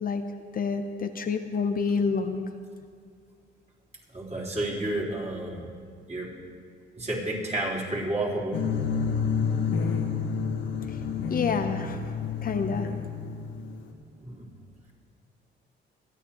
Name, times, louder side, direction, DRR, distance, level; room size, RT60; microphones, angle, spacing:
voice 1, 0.5-2.4 10.9-11.0 11.3-13.0, left 5 dB, 45° left, 7 dB, 0.7 m, -28 dB
voice 2, 4.1-5.7 6.1-6.3 7.0-8.6 14.2-14.5, right 1 dB, 35° right, -5 dB, 3.7 m, -30 dB
sound 1, 8.5-13.9, left 6 dB, 80° left, 1.3 m, -29 dB
26.5 x 9.9 x 3.0 m, 2.1 s
cardioid pair, 90°, 20 cm